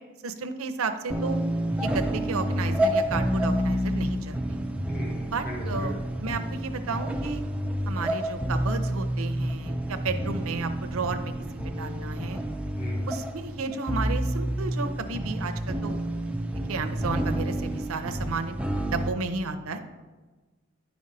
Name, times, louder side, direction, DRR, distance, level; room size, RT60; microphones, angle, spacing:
voice 1, 0.2-1.4 1.8-4.6 5.3-7.4 7.9-12.4 13.1-16.0 16.7-19.8, right 4 dB, 75° right, 7 dB, 0.6 m, -33 dB
sound 1, 1.1-19.1, equal, 5° right, 0.3 m, -29 dB
voice 2, 4.9-5.9 12.8-13.1, right 1 dB, 40° left, -3 dB, 1.4 m, -38 dB
10.5 x 5.2 x 2.7 m, 1.3 s
head